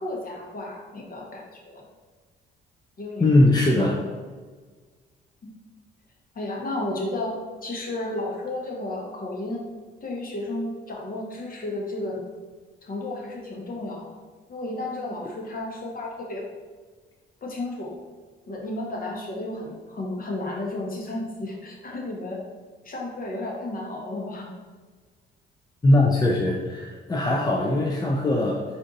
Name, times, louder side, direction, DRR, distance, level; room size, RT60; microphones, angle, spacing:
voice 1, 0.0-1.8 3.0-3.2 6.3-7.4 7.6-9.6 10.0-12.2 12.8-14.1 14.5-16.5 17.4-18.0 18.5-22.4 22.8-24.5, left 2 dB, 45° left, -2 dB, 1.2 m, -32 dB
voice 2, 3.2-4.0 25.8-28.6, left 1 dB, 20° left, -1 dB, 0.5 m, -20 dB
4.3 x 2.7 x 3.9 m, 1.4 s
cardioid pair, 90°, 20 cm